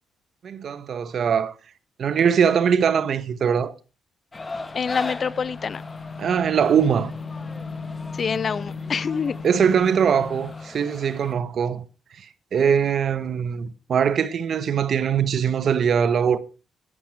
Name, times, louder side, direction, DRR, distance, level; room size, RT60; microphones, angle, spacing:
voice 1, 0.4-1.5 2.0-3.7 6.2-7.1 9.4-11.9 12.2-16.4, right 7 dB, 55° right, 0.9 m, -22 dB
sound 1, 4.3-10.7, left 4 dB, 80° left, 1.4 m, -37 dB
sound 2, 4.3-11.3, left 3 dB, 20° left, 0.9 m, -39 dB
voice 2, 4.7-5.8 8.1-9.4, left 6 dB, 40° left, 0.5 m, -26 dB
10.0 x 9.9 x 4.6 m
cardioid pair, 105°, 0 cm